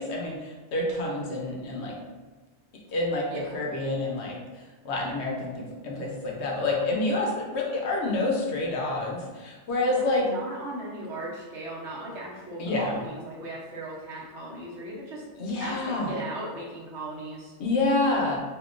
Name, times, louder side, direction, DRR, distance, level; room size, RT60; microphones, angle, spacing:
voice 1, 0.0-1.9 2.9-3.2 3.5-4.4 4.8-10.2 12.6-13.0 15.4-16.1 17.6-18.4, left 2 dB, 75° left, -1 dB, 0.9 m, -28 dB
voice 2, 3.3-3.6 9.9-15.2 15.5-17.5, right 1 dB, 85° right, -5 dB, 1.1 m, -38 dB
3.6 x 2.8 x 2.4 m, 1.3 s
omnidirectional pair, 1.1 m